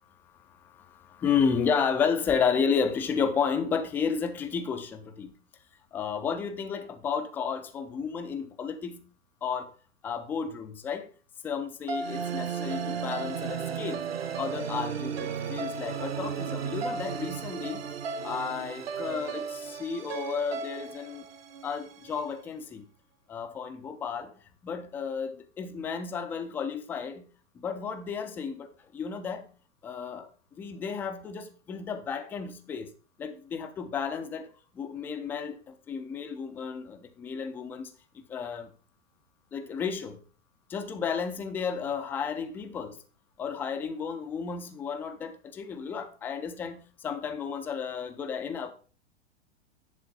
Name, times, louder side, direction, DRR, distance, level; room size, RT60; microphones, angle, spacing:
voice 1, 0.8-5.3 5.9-9.1 9.4-9.7 10.0-11.1 11.4-14.1 14.4-17.9 18.2-21.2 21.6-22.8 23.3-24.3 24.6-29.5 29.8-30.3 30.6-32.9 33.2-34.5 34.7-37.9 38.1-38.7 39.5-40.2 40.7-43.0 43.4-48.7, left 6 dB, 5° left, 0.3 m, -32 dB
sound 1, 11.9-22.2, right 6 dB, 60° right, 1.1 m, -34 dB
10.5 x 3.7 x 5.2 m
figure-of-eight pair, 95°, 35 cm